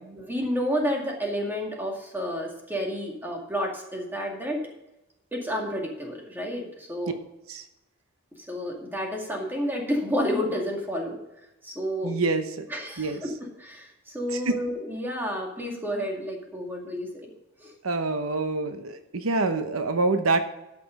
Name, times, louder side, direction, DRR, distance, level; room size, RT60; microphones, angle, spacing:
voice 1, 0.3-4.6 5.3-7.1 8.5-11.2 11.6-12.1 12.7-13.1 13.6-17.1 17.6-17.7, equal, 10° right, -1 dB, 2.2 m, -30 dB
voice 2, 12.0-12.6 13.0-13.2 14.3-14.6 17.8-20.4, right 3 dB, 85° right, 8 dB, 0.9 m, -26 dB
12.5 x 6.0 x 5.3 m, 0.92 s
head